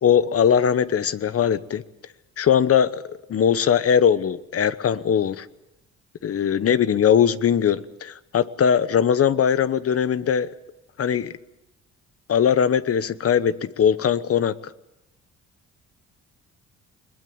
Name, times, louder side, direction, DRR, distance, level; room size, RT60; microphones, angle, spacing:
voice 1, 0.0-1.8 2.4-5.5 6.2-10.5 11.0-11.3 12.3-14.5, left 8 dB, 50° left, 15 dB, 1.0 m, -20 dB
21.5 x 20.5 x 8.7 m, 0.87 s
cardioid pair, 90°, 30 cm